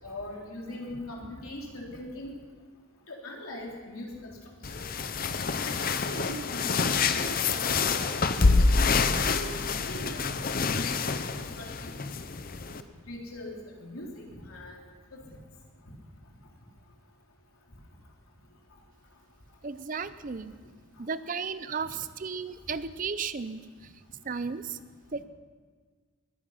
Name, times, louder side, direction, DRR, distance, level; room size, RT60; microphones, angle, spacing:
voice 1, 0.0-2.3 3.1-4.3 4.7-4.8 5.7-10.3 10.7-12.0 13.1-14.8 15.1-15.2, left 1 dB, 80° left, -1 dB, 3.3 m, -41 dB
sound 1, 4.6-12.8, left 4 dB, 40° left, 0.7 m, -27 dB
voice 2, 19.6-20.5 21.0-23.9 24.2-24.8 25.1-25.2, right 5 dB, 40° right, 13 dB, 0.5 m, -34 dB
21.0 x 9.9 x 5.7 m, 1.5 s
head